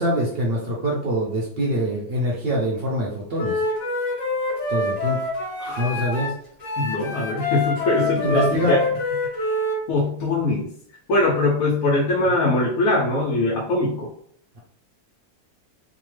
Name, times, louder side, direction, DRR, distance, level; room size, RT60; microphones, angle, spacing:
voice 1, 0.0-3.6 4.7-5.2 5.8-6.3 8.0-8.7 12.4-12.5, equal, 60° right, -3 dB, 0.6 m, -24 dB
Wind instrument woodwind instrument, 3.4-6.3 6.6-9.8, left 2 dB, 30° left, 0.9 m, -26 dB
voice 2, 6.8-8.9 9.2-9.5 9.9-10.7 11.1-14.1, left 2 dB, 75° left, -4 dB, 1.0 m, -22 dB
2.8 x 2.1 x 3.1 m, 0.63 s
omnidirectional pair, 1.6 m